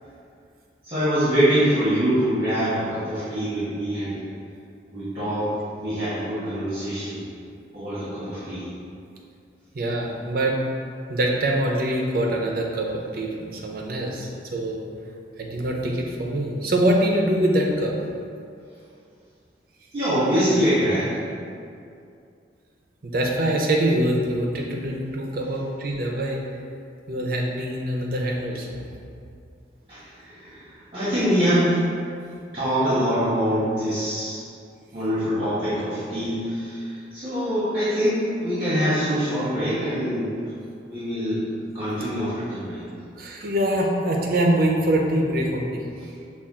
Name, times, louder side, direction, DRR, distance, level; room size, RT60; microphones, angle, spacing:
voice 1, 0.8-4.2 4.9-7.2 7.7-8.7 19.9-21.2 29.9-31.7 32.5-34.4 34.9-40.3 40.9-42.8, equal, 30° right, -14 dB, 1.3 m, -24 dB
voice 2, 9.7-10.6 11.1-14.8 15.4-17.9 23.0-26.4 27.1-28.8 43.2-45.8, right 1 dB, 55° right, 0 dB, 0.6 m, -24 dB
5.5 x 2.4 x 3.6 m, 2.4 s
head